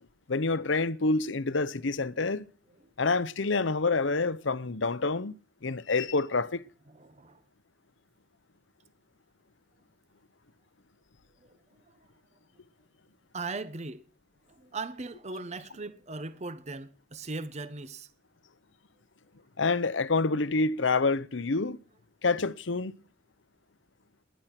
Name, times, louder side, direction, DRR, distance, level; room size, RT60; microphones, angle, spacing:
voice 1, 0.3-2.5 3.0-6.6 19.6-21.8 22.2-22.9, left 3 dB, 70° left, 0.9 m, -27 dB
voice 2, 6.9-7.4 11.4-12.1 13.3-14.1 14.5-18.1, right 3 dB, 35° right, 1.0 m, -39 dB
20.5 x 10.5 x 6.0 m
head